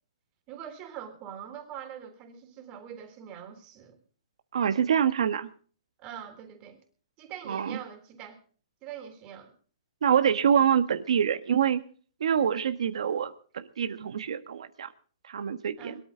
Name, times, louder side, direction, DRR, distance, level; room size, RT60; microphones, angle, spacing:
voice 1, 0.5-4.0 6.0-6.8 7.2-8.4 8.8-9.5 15.8-16.0, right 9 dB, 25° right, 5 dB, 3.7 m, -43 dB
voice 2, 4.5-5.5 7.5-7.8 10.0-11.8 12.2-14.9 15.3-15.9, right 8 dB, 75° right, 8 dB, 1.5 m, -26 dB
22.0 x 13.0 x 3.9 m, 0.42 s
hypercardioid pair, 155°, 3 cm